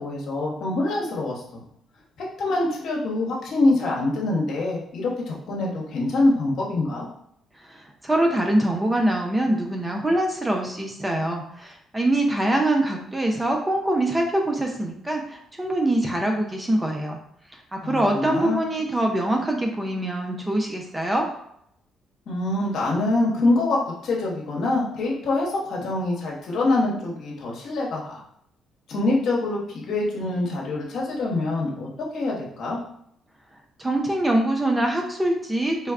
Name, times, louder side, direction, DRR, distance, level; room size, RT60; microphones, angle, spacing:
voice 1, 0.0-1.6 2.2-7.1 17.8-18.6 22.3-28.2 28.9-32.8, left 2 dB, 70° left, -3 dB, 0.9 m, -25 dB
voice 2, 8.0-17.2 17.7-21.3 33.8-35.9, right 1 dB, 15° right, 2 dB, 0.4 m, -24 dB
3.2 x 2.2 x 2.3 m, 0.72 s
supercardioid pair, 70°, 0 cm